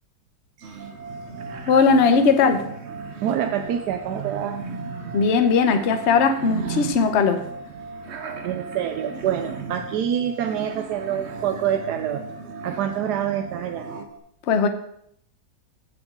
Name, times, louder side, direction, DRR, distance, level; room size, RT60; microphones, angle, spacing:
sound 1, 0.6-14.0, right 5 dB, 50° right, 1.0 m, -37 dB
voice 1, 0.6-1.7 3.2-4.6 8.4-12.3 12.6-13.9, right 9 dB, 75° right, 7 dB, 1.1 m, -27 dB
sound 2, 0.8-14.2, right 2 dB, 5° left, 2.8 m, -40 dB
voice 2, 1.7-2.6 5.1-7.4 14.5-14.7, left 5 dB, 50° left, 8 dB, 0.9 m, -18 dB
14.5 x 6.2 x 3.7 m, 0.70 s
omnidirectional pair, 1.9 m